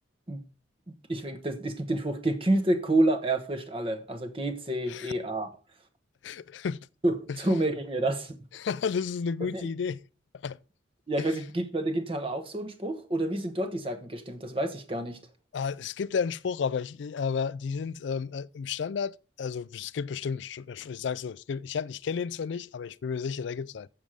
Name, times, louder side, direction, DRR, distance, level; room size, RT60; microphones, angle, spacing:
voice 1, 0.9-5.5 7.0-8.4 9.5-9.7 11.1-15.2, right 1 dB, 30° right, 1.1 m, -29 dB
voice 2, 6.2-6.9 7.3-7.4 8.5-10.0 10.3-10.6 11.2-11.3 15.5-23.9, left 6 dB, 70° left, 0.4 m, -32 dB
7.6 x 7.3 x 4.9 m
head